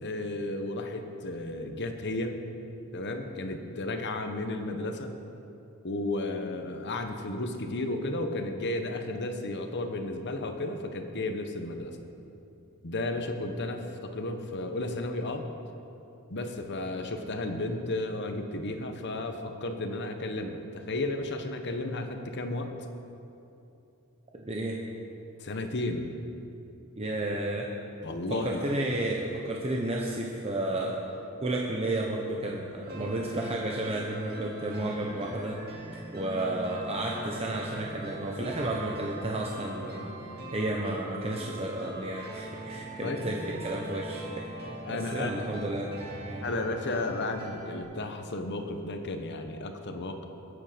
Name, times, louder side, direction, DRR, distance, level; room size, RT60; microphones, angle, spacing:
voice 1, 0.0-2.4 2.9-5.1 5.8-12.0 12.8-15.5 16.3-22.7 25.4-26.1 28.0-28.6 43.0-43.2 44.9-45.5 46.4-50.2, left 2 dB, 55° left, 5 dB, 1.1 m, -33 dB
voice 2, 24.4-24.8 26.9-27.7 28.3-31.0 31.4-35.6 35.9-40.1 40.5-44.5 44.9-45.9 46.2-46.4, right 1 dB, 30° right, -1 dB, 1.0 m, -32 dB
sound 1, 32.8-47.8, right 2 dB, 45° right, 2.2 m, -42 dB
21.0 x 8.5 x 5.1 m, 2.8 s
head